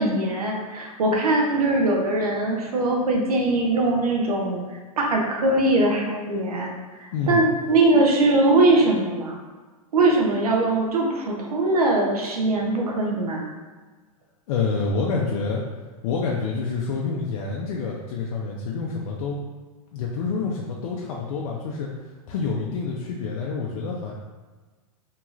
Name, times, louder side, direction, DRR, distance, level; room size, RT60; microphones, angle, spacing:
voice 1, 0.0-4.6 5.0-6.7 7.0-9.4 9.9-13.4, right 2 dB, 90° right, 0 dB, 0.7 m, -21 dB
voice 2, 7.1-7.4 14.5-15.6 16.0-19.4 19.9-21.9 22.3-24.1, left 4 dB, 60° left, -2 dB, 0.4 m, -27 dB
3.0 x 2.9 x 2.4 m, 1.3 s
hypercardioid pair, 125°, 19 cm